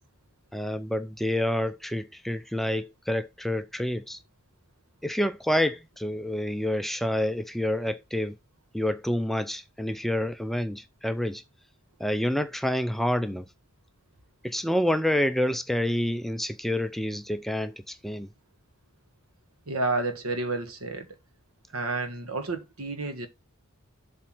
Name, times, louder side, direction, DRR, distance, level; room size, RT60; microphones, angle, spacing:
voice 1, 0.5-4.2 5.0-8.4 8.7-11.4 12.0-13.4 14.4-18.3, left 1 dB, ahead, 0.5 m, -28 dB
voice 2, 19.7-21.1 21.7-23.3, right 3 dB, 80° right, 1.5 m, -30 dB
7.4 x 3.5 x 6.0 m
head